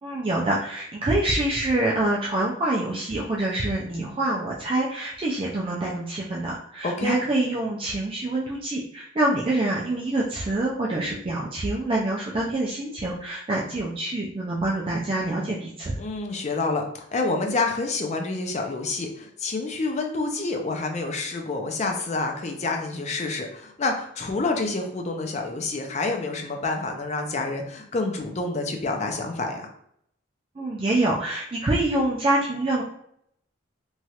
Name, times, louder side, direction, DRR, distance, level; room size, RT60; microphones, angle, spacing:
voice 1, 0.0-16.0 30.6-32.8, right 2 dB, 25° right, -4 dB, 0.3 m, -26 dB
voice 2, 6.8-7.2 16.0-29.7, left 3 dB, 35° left, 3 dB, 0.4 m, -28 dB
3.0 x 2.3 x 2.8 m, 0.70 s
head